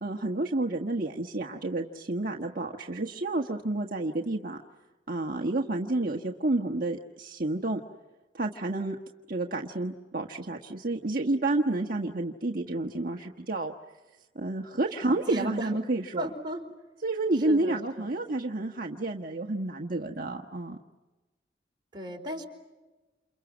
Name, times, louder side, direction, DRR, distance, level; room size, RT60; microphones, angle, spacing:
voice 1, 0.0-4.6 5.1-7.8 8.3-9.0 9.3-13.7 14.3-16.3 17.0-20.8, right 2 dB, 50° right, 1 dB, 1.4 m, -30 dB
voice 2, 15.0-15.7 16.2-16.6 17.4-18.1 21.9-22.4, right 1 dB, 25° right, 2 dB, 4.4 m, -35 dB
29.0 x 29.0 x 6.4 m, 1.2 s
head